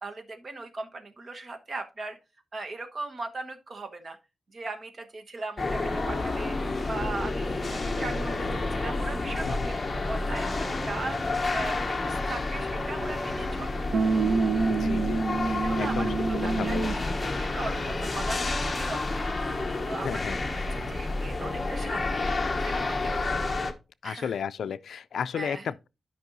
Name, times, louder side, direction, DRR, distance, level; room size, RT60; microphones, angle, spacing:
voice 1, 0.0-2.2 2.5-4.2 4.5-9.8 10.1-11.2 11.5-13.9 15.6-16.1 16.4-19.3 19.7-22.3 22.6-23.4 24.0-24.3 25.3-25.7, right 3 dB, 40° right, 1.2 m, -38 dB
sound 1, 5.6-23.7, left 2 dB, 25° left, 1.0 m, -30 dB
sound 2, 13.9-17.1, right 4 dB, 70° right, 0.7 m, -27 dB
voice 2, 14.7-16.1 16.6-17.1 20.0-20.4 24.0-25.9, left 7 dB, 85° left, 0.3 m, -34 dB
12.0 x 5.3 x 2.6 m
wide cardioid pair, 165°, 0 cm